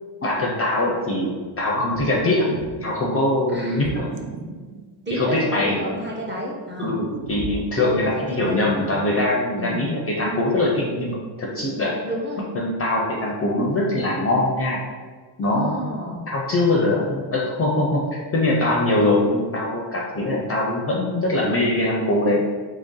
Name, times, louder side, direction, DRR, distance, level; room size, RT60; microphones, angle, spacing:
voice 1, 0.2-2.5 2.8-4.1 5.1-5.9 6.8-11.9 12.6-14.8 15.4-15.9 16.3-22.4, left 1 dB, 30° left, -2 dB, 0.4 m, -22 dB
sound 1, 1.7-2.9 3.8-5.3 5.8-8.0, right 5 dB, 65° right, 0.5 m, -35 dB
voice 2, 3.5-3.9 5.1-7.0 7.5-9.0 9.6-9.9 12.0-12.5 15.4-16.2, equal, 25° right, -3 dB, 0.7 m, -31 dB
3.1 x 2.7 x 3.7 m, 1.5 s
cardioid pair, 125°, 47 cm